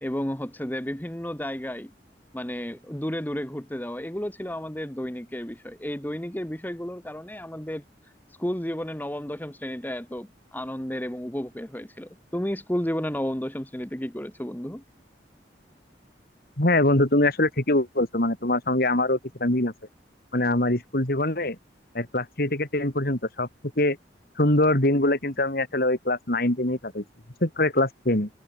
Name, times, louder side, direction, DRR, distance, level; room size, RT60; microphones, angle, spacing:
voice 1, 0.0-1.9 2.3-7.8 8.4-14.8, equal, 10° left, 1.6 m, -32 dB
voice 2, 16.6-19.7 20.3-21.6 21.9-23.5 23.8-24.0 24.4-27.0 27.4-28.3, left 1 dB, 60° left, 3.7 m, -23 dB
head